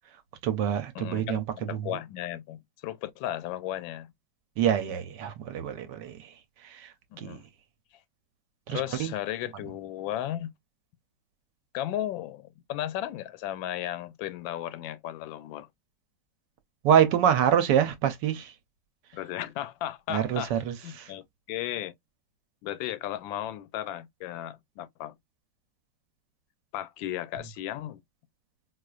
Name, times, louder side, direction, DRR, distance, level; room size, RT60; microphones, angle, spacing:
voice 1, 0.4-1.4 4.6-6.3 6.6-6.9 7.2-7.4 8.7-9.1 16.8-18.5 20.1-21.1, right 9 dB, 70° right, 1.2 m, -26 dB
voice 2, 0.9-4.1 7.1-7.4 8.7-10.5 11.7-15.7 19.1-21.9 22.6-25.2 26.7-28.0, left 13 dB, 85° left, 1.3 m, -35 dB
4.3 x 2.4 x 2.3 m
omnidirectional pair, 2.0 m